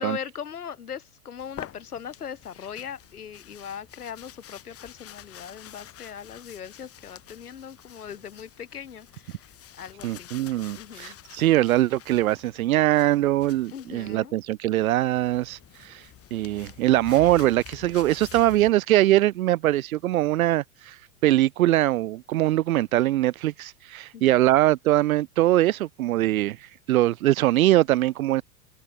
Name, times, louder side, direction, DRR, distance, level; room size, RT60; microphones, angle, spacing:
voice 1, 0.0-9.5 9.8-10.3 10.8-11.2 13.7-14.4 24.1-24.4, left 8 dB, 80° left, 6.8 m, -39 dB
sound 1, 1.4-14.2 15.1-18.7, left 11 dB, 30° left, 7.0 m, -47 dB
voice 2, 10.0-15.6 15.9-16.0 16.3-20.9 21.2-26.6 26.9-28.4, right 15 dB, 65° right, 1.0 m, -22 dB
open air
hypercardioid pair, 100°, 44 cm